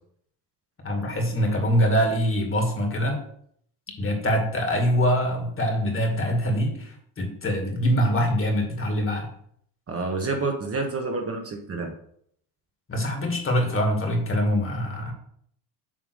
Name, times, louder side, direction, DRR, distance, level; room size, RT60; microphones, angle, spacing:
voice 1, 0.8-3.2 4.0-9.3 12.9-15.1, equal, 25° left, 2 dB, 2.2 m, -24 dB
voice 2, 9.9-11.9, right 3 dB, 30° right, 2 dB, 1.3 m, -28 dB
7.5 x 3.4 x 6.3 m, 0.66 s
supercardioid pair, 95°, 47 cm